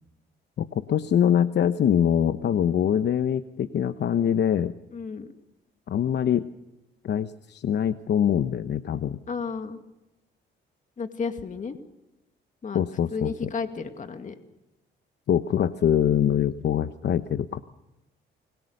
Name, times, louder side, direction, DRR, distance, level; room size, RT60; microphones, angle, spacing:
voice 1, 0.6-4.7 5.9-6.5 7.0-9.2 12.7-13.5 15.3-17.6, left 9 dB, 60° left, 11 dB, 0.9 m, -24 dB
voice 2, 4.9-5.3 9.3-9.8 11.0-11.8 12.6-12.8 13.1-14.4, left 5 dB, 40° left, 6 dB, 2.2 m, -32 dB
29.5 x 22.0 x 6.7 m, 0.94 s
cardioid pair, 90°, 20 cm